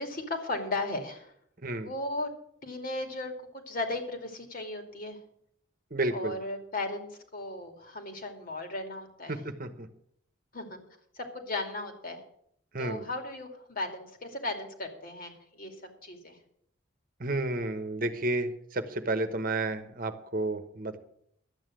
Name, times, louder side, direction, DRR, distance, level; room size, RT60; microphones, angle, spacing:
voice 1, 0.0-1.3 1.8-2.3 2.6-3.3 3.7-5.2 6.1-9.4 10.5-10.8 11.2-12.2 12.8-15.7 16.0-16.4, left 2 dB, 45° left, 5 dB, 2.5 m, -36 dB
voice 2, 5.9-6.3 9.3-9.9 12.7-13.0 17.2-21.0, right 2 dB, 45° right, 9 dB, 1.1 m, -31 dB
12.0 x 8.9 x 7.6 m, 0.70 s
head